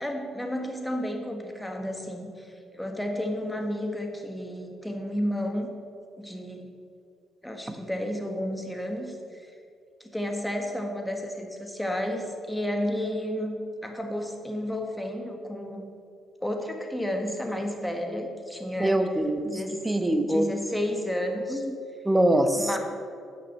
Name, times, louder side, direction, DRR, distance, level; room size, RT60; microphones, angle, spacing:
voice 1, 0.0-5.7 6.2-6.7 7.4-9.4 10.0-15.9 16.4-19.0 19.4-19.8 20.3-21.6 22.5-22.8, left 1 dB, 5° left, 3 dB, 1.4 m, -32 dB
voice 2, 18.8-19.5 19.8-20.4 21.5-21.6 22.0-22.8, right 1 dB, 10° right, 6 dB, 1.0 m, -23 dB
9.3 x 5.9 x 6.9 m, 2.4 s
cardioid pair, 90°, 0 cm